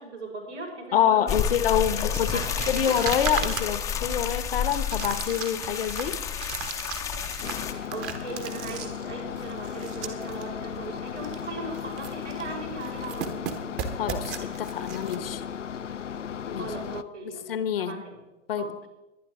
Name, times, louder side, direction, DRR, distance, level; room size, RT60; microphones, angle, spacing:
voice 1, 0.0-1.5 1.8-2.1 2.3-2.9 7.9-13.4 16.6-17.4 17.8-18.2 18.6-18.9, right 3 dB, 75° right, -2 dB, 5.3 m, -38 dB
voice 2, 0.9-2.4 2.7-6.2 14.0-15.4 16.5-16.7 17.5-18.0 18.5-18.7, left 9 dB, 50° left, 13 dB, 0.9 m, -26 dB
sound 1, 1.3-7.7, left 8 dB, 10° left, 0.6 m, -30 dB
sound 2, 2.1-10.4 10.7-10.8 11.2-11.5 11.7-12.5 12.8-15.2, right 7 dB, 25° right, 1.1 m, -37 dB
sound 3, 7.4-17.0, left 8 dB, 80° left, 0.6 m, -36 dB
22.5 x 9.5 x 3.6 m, 0.99 s
figure-of-eight pair, 110°, 36 cm